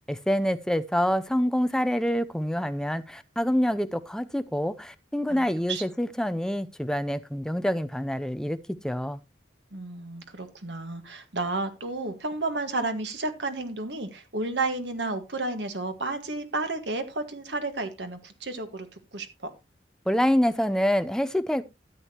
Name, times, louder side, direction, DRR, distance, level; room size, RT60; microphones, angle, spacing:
voice 1, 0.1-8.6 8.8-9.2 20.1-21.6, equal, 5° left, 0.5 m, -26 dB
voice 2, 5.3-5.8 9.7-19.5, right 2 dB, 80° right, 1.7 m, -32 dB
13.0 x 8.4 x 2.9 m
head